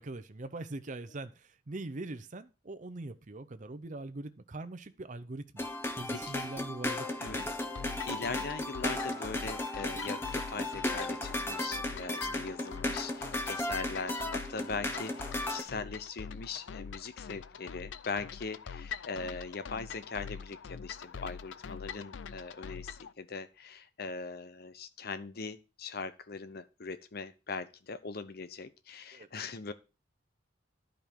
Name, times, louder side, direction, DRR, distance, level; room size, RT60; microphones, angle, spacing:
voice 1, 0.0-5.7 6.0-7.4 29.1-29.3, right 2 dB, 40° right, 0.7 m, -42 dB
sound 1, 5.6-15.6, left 1 dB, 15° left, 1.1 m, -35 dB
voice 2, 6.1-6.5 7.2-7.4 7.8-29.7, left 4 dB, 55° left, 0.8 m, -40 dB
sound 2, 7.3-23.1, left 6 dB, 80° left, 0.5 m, -44 dB
11.5 x 5.2 x 4.6 m
head